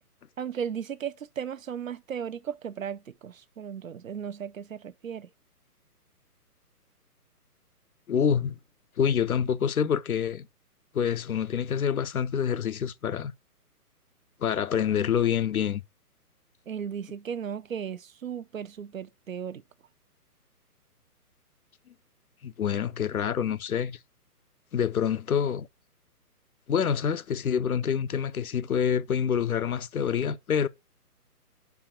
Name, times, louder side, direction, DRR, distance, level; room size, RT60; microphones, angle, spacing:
voice 1, 0.4-5.3 16.7-19.6, right 8 dB, 60° right, 0.6 m, -36 dB
voice 2, 8.1-8.6 9.0-10.5 10.9-13.3 14.4-15.8 22.4-24.0 24.7-25.7 26.7-30.7, left 8 dB, 65° left, 0.6 m, -26 dB
5.1 x 4.7 x 6.1 m
figure-of-eight pair, 135°, 47 cm